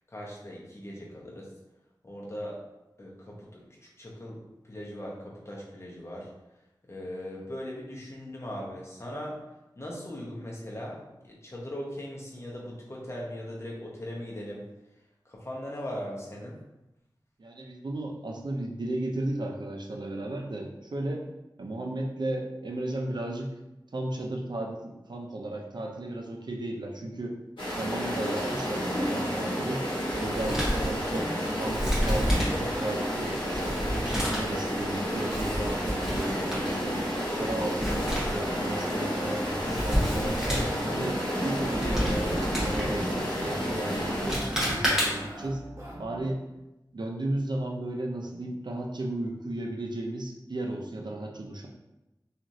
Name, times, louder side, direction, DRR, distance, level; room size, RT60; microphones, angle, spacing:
voice 1, 0.1-1.5 2.0-2.6 3.0-6.3 6.9-9.4 9.8-14.6 15.2-16.6, equal, 35° left, -4 dB, 0.8 m, -39 dB
voice 2, 17.4-21.2 21.6-23.5 23.9-27.3 27.7-29.8 30.1-37.0 37.3-39.4 39.8-45.6 46.0-46.4 46.9-51.7, right 1 dB, 65° right, 0 dB, 0.5 m, -35 dB
sound 1, 27.6-44.3, equal, 85° left, 1.0 m, -31 dB
Male speech man speaking, 30.1-45.4, equal, 5° right, 1.0 m, -31 dB
sound 2, 35.7-46.3, equal, 35° right, 0.8 m, -40 dB
2.9 x 2.5 x 2.6 m, 0.95 s
wide cardioid pair, 55°, 8 cm